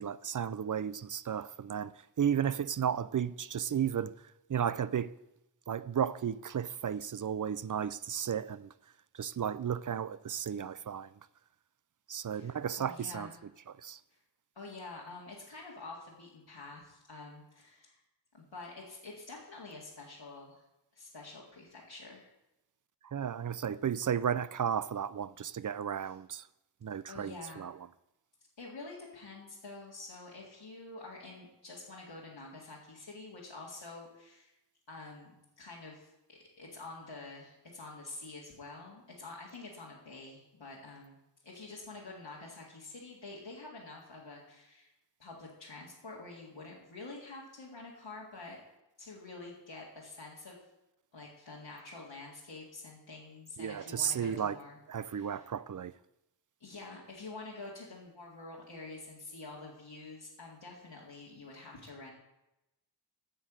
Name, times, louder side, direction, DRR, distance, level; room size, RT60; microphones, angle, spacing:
voice 1, 0.0-1.9 2.2-4.2 4.5-5.1 5.7-8.7 9.2-11.1 12.1-14.0 23.0-26.4 26.8-27.9 53.6-54.6 54.9-55.9, right 8 dB, 45° right, 0.5 m, -34 dB
voice 2, 12.3-13.3 14.1-14.2 14.6-18.0 18.3-20.6 20.9-22.3 26.0-26.2 27.1-27.6 28.6-34.5 34.9-41.2 41.4-44.9 45.2-48.6 49.0-50.6 51.1-55.5 56.6-62.1, left 3 dB, 90° left, 2.0 m, -48 dB
8.9 x 6.5 x 7.4 m
wide cardioid pair, 55°, 43 cm